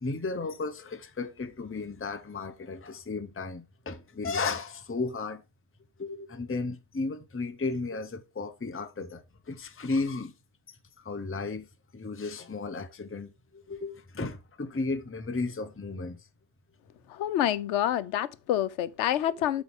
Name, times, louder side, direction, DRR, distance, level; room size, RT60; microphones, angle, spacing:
voice 1, 0.0-5.4 6.0-10.3 10.7-11.7 11.9-16.3, left 3 dB, 15° left, 0.6 m, -34 dB
voice 2, 17.1-19.6, left 11 dB, 85° left, 0.9 m, -27 dB
8.1 x 6.2 x 3.5 m
omnidirectional pair, 1.2 m